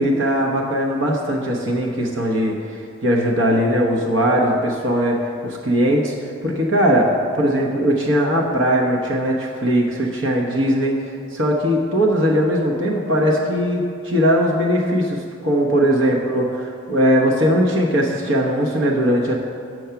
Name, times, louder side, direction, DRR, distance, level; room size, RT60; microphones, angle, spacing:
voice 1, 0.0-5.2 5.4-19.4, equal, 70° right, -1 dB, 0.9 m, -19 dB
6.7 x 6.2 x 5.8 m, 2.4 s
head